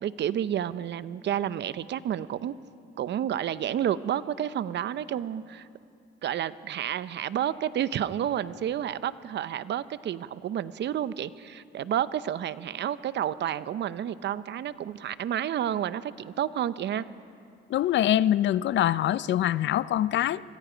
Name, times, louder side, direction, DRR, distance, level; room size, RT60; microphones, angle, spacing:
voice 1, 0.0-2.5 3.0-5.7 6.2-17.1, right 10 dB, 65° right, 15 dB, 0.7 m, -30 dB
voice 2, 17.7-20.4, left 12 dB, 65° left, 18 dB, 0.5 m, -24 dB
25.0 x 22.5 x 5.1 m, 2.4 s
cardioid pair, 90°, 20 cm